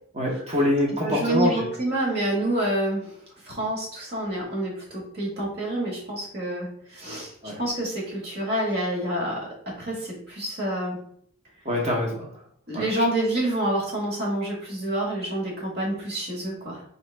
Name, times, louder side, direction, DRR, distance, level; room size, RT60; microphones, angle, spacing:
voice 1, 0.1-1.7 7.4-7.6 11.6-12.3 12.7-12.8, left 1 dB, 30° right, -1 dB, 1.0 m, -24 dB
voice 2, 1.0-3.1 3.4-9.4 9.8-11.0 12.7-16.8, right 1 dB, 50° right, -3 dB, 1.5 m, -28 dB
4.0 x 3.1 x 3.3 m, 0.63 s
head